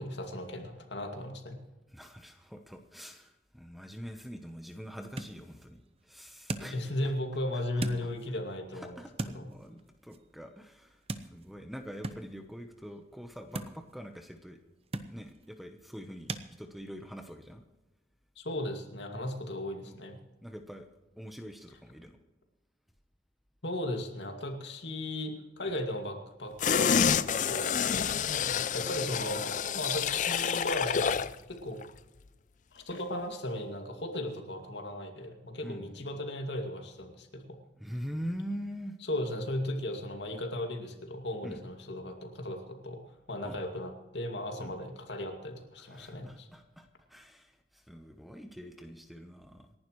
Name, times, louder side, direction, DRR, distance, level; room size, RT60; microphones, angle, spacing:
voice 1, 0.0-1.6 6.6-8.9 9.3-9.5 18.4-20.2 23.6-28.1 28.7-29.4 29.7-31.2 31.5-31.8 32.7-37.6 39.1-43.0 43.3-46.5, left 1 dB, 65° left, 3 dB, 2.3 m, -36 dB
voice 2, 1.9-7.1 7.5-8.1 8.7-14.6 15.1-17.6 19.2-19.3 19.8-20.0 20.4-20.9 21.2-22.2 25.7-25.8 28.0-28.2 35.6-36.0 37.7-39.0 41.4-41.6 43.4-43.6 44.6-44.8 45.8-49.7, equal, ahead, 5 dB, 0.9 m, -44 dB
sound 1, 4.0-16.5, right 2 dB, 30° right, 0.8 m, -43 dB
sound 2, 26.6-31.4 31.7-31.8, left 7 dB, 40° left, 0.4 m, -28 dB
27.5 x 11.5 x 3.2 m, 1.1 s
head